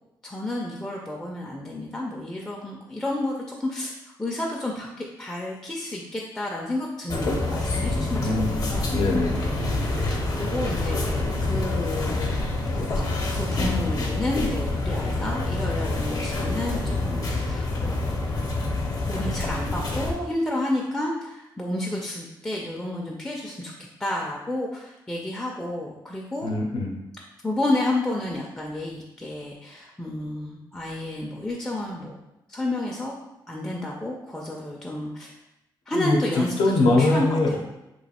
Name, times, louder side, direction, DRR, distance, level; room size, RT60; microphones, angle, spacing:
voice 1, 0.2-3.9 4.2-8.9 9.4-12.3 12.7-13.0 13.3-18.7 19.1-23.7 24.0-26.5 27.4-32.2 32.5-33.2 33.5-35.3 35.9-37.6, left 1 dB, 10° left, -2 dB, 0.4 m, -31 dB
sound 1, 7.1-20.1, left 2 dB, 45° left, 0.7 m, -27 dB
voice 2, 8.1-9.5 26.4-26.9 35.9-37.6, left 2 dB, 85° left, 1 dB, 0.6 m, -23 dB
3.0 x 2.4 x 4.2 m, 0.92 s
wide cardioid pair, 130°, 8 cm